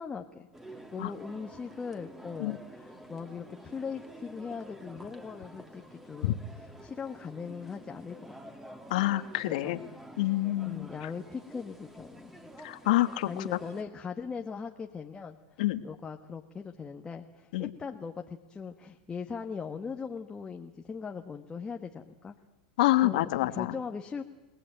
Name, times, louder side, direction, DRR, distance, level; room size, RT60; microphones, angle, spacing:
voice 1, 0.0-6.4 6.8-8.3 9.4-9.8 10.6-12.3 13.3-15.4 15.8-22.3 23.0-23.2 23.5-24.2, left 5 dB, 20° left, 4 dB, 1.5 m, -40 dB
sound 1, 0.5-13.8, right 1 dB, 10° right, 3.0 m, -49 dB
voice 2, 8.9-9.8 10.2-10.9 12.6-13.3 15.6-15.8 17.5-17.7 22.8-23.8, left 17 dB, 70° left, 11 dB, 1.8 m, -27 dB
29.5 x 18.5 x 9.2 m, 1.1 s
hypercardioid pair, 115°, 4 cm